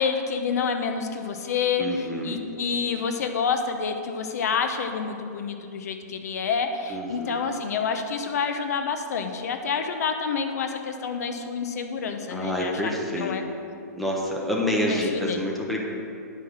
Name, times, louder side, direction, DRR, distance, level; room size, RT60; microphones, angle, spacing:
voice 1, 0.0-1.8 2.2-13.4 14.9-15.4, left 6 dB, 65° left, 6 dB, 0.9 m, -28 dB
voice 2, 1.8-2.4 6.9-7.5 12.3-13.5 13.9-15.8, equal, ahead, -3 dB, 1.0 m, -28 dB
10.5 x 5.7 x 6.5 m, 2.5 s
hypercardioid pair, 155°, 9 cm